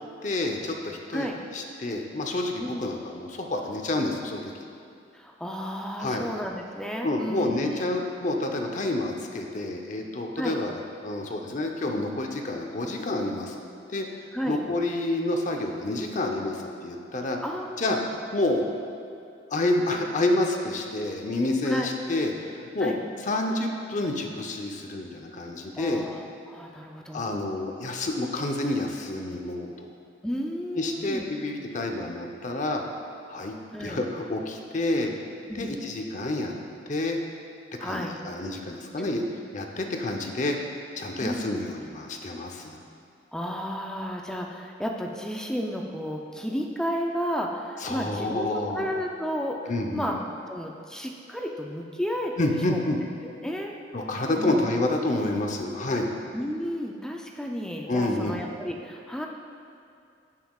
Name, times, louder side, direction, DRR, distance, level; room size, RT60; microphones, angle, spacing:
voice 1, 0.2-4.7 6.0-6.3 7.0-13.6 13.9-17.4 17.8-18.0 18.3-18.7 19.5-22.9 23.2-26.1 27.1-29.9 30.7-32.8 33.3-33.5 33.8-35.1 35.6-36.6 36.9-37.2 37.8-39.2 39.5-40.6 41.0-42.8 47.8-48.9 49.7-50.1 52.4-53.0 53.9-56.1 57.9-58.4, left 2 dB, 40° left, 2 dB, 0.8 m, -29 dB
voice 2, 5.1-7.7 10.4-10.6 14.3-14.6 17.4-18.0 21.6-21.9 22.8-23.0 25.8-27.3 30.2-31.2 33.7-34.0 35.5-35.7 37.8-38.2 39.0-39.1 41.2-41.5 43.3-50.2 50.5-52.8 53.2-53.7 54.4-54.7 56.3-59.3, equal, 5° left, 0 dB, 0.5 m, -32 dB
17.0 x 5.7 x 2.4 m, 2.5 s
head